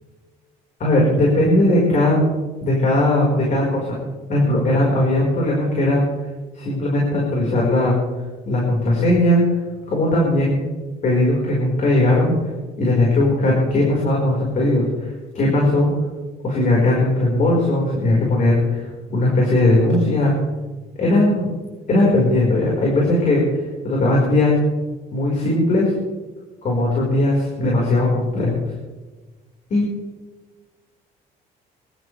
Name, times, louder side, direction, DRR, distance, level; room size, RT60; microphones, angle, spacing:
voice 1, 0.8-2.2 2.6-4.0 4.3-6.1 6.5-8.0 8.5-9.6 9.9-10.7 11.0-12.3 12.8-15.9 16.4-20.3 21.0-21.5 21.9-24.6 25.1-25.9 26.6-28.6 29.7-29.8, left 1 dB, 50° left, -3 dB, 5.3 m, -18 dB
23.0 x 13.5 x 3.5 m, 1.3 s
cardioid pair, 110°, 17 cm